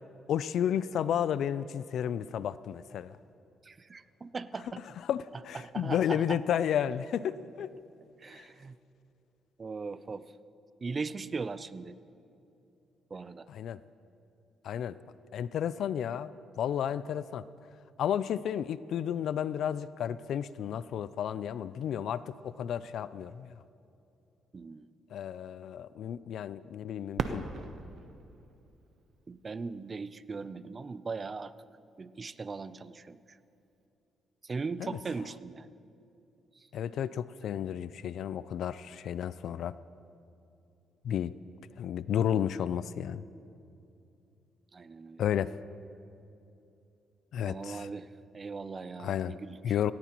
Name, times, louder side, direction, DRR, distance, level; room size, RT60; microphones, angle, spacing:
voice 1, 0.3-3.1 5.0-7.7 8.3-8.5 13.5-13.8 14.6-15.0 15.3-16.3 16.6-17.4 18.0-23.5 25.1-27.5 34.8-35.0 36.7-39.7 41.0-41.3 41.8-43.2 45.2-45.5 47.3-47.9 49.0-49.4 49.6-49.9, left 9 dB, 70° left, 16 dB, 0.3 m, -32 dB
voice 2, 3.6-4.8 5.5-6.4 8.2-8.8 9.6-10.3 10.8-11.9 13.1-13.5 24.5-24.9 29.3-31.5 32.0-33.2 34.4-35.7 44.7-45.2 47.5-48.1 48.3-49.6, right 4 dB, 35° right, 15 dB, 0.5 m, -39 dB
Fireworks, 27.1-29.9 30.6-30.7 31.4-31.8 33.7-33.9, right 5 dB, 60° right, 0.8 m, -39 dB
18.5 x 17.5 x 3.0 m, 2.7 s
cardioid pair, 90°, 0 cm